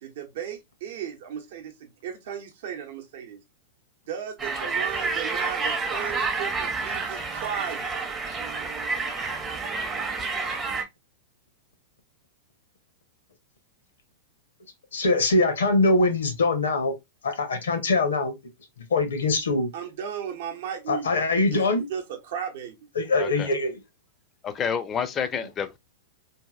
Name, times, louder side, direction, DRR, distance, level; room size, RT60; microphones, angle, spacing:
voice 1, 0.0-3.4 4.1-7.9 19.7-21.6 21.9-22.8, right 8 dB, 60° right, 0.7 m, -35 dB
sound 1, 4.4-10.8, right 4 dB, 20° right, 0.6 m, -29 dB
voice 2, 14.9-16.9 17.2-18.3 18.9-19.7 20.9-21.9 23.0-23.7, left 2 dB, 80° left, 0.7 m, -23 dB
voice 3, 23.2-23.5 24.4-25.8, left 7 dB, 25° left, 0.4 m, -29 dB
2.7 x 2.7 x 2.3 m
hypercardioid pair, 105°, 0 cm